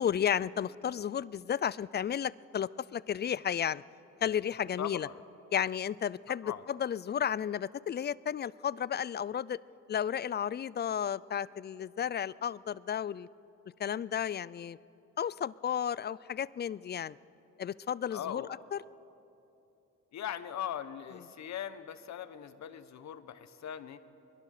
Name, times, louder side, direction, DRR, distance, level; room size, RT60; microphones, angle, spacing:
voice 1, 0.0-3.8 4.2-5.1 5.5-9.6 9.9-13.3 13.8-14.8 15.2-17.2 17.6-18.4 18.7-18.8, left 9 dB, 35° left, 21 dB, 0.4 m, -33 dB
voice 2, 4.8-5.2 6.4-6.6 18.1-18.5 20.1-24.0, left 9 dB, 65° left, 12 dB, 1.2 m, -40 dB
22.5 x 21.0 x 6.7 m, 2.9 s
cardioid pair, 90°, 30 cm